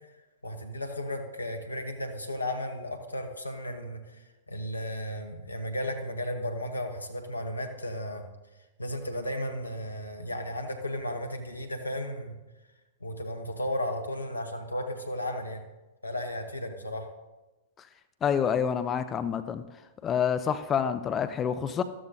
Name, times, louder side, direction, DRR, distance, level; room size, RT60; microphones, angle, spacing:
voice 1, 0.4-8.2 8.8-12.3 13.0-15.6 16.0-17.1, left 1 dB, 90° left, 5 dB, 1.1 m, -34 dB
voice 2, 18.2-19.6 20.0-21.8, left 7 dB, 25° left, 11 dB, 0.6 m, -27 dB
13.5 x 13.0 x 2.8 m, 1.1 s
figure-of-eight pair, 100°, 0 cm